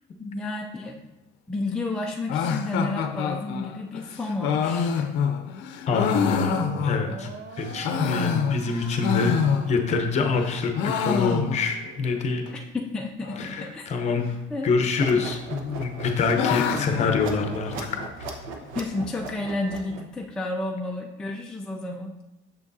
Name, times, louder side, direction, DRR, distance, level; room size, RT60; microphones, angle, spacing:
voice 1, 0.2-0.9 1.5-5.1 12.7-13.8 14.5-14.7 18.7-22.1, left 2 dB, 5° left, -1 dB, 0.4 m, -31 dB
sound 1, 2.3-7.3 7.7-10.0 10.3-11.9 12.1-12.2 12.5-12.6 13.2-13.6 14.7-15.3 15.6-18.1, left 7 dB, 65° left, 0.6 m, -27 dB
voice 2, 5.8-7.3 7.6-9.4 9.7-12.5 13.4-14.3 14.6-17.7 18.2-18.3, left 4 dB, 35° left, 5 dB, 0.8 m, -25 dB
sound 2, 5.9-12.4, right 5 dB, 55° right, 0.6 m, -44 dB
sound 3, 14.9-20.2, right 4 dB, 75° right, 0.9 m, -38 dB
6.8 x 6.0 x 2.7 m, 0.99 s
cardioid pair, 155°, 20 cm